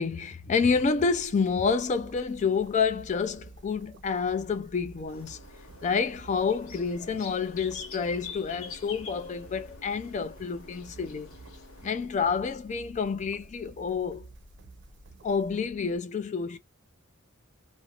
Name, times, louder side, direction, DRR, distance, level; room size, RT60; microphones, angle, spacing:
voice 1, 0.0-5.4 5.8-11.3 11.8-14.3 15.2-16.6, left 5 dB, 35° left, 0.3 m, -28 dB
sound 1, 0.5-16.0, right 2 dB, 55° right, 0.5 m, -51 dB
sound 2, 5.1-11.9, left 5 dB, 75° left, 0.7 m, -46 dB
2.4 x 2.0 x 2.8 m
head